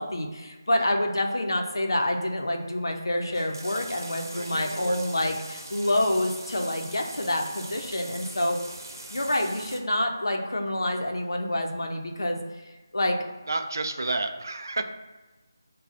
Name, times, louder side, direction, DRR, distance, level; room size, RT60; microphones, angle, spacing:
voice 1, 0.0-8.6 9.1-12.4 12.9-13.2, left 1 dB, 90° left, 2 dB, 0.7 m, -27 dB
sound 1, 3.2-9.8, right 1 dB, 70° right, 0.8 m, -42 dB
voice 2, 4.3-5.4 13.5-14.8, right 2 dB, 55° right, 6 dB, 0.4 m, -32 dB
6.3 x 2.3 x 2.6 m, 1.2 s
figure-of-eight pair, 175°, 2 cm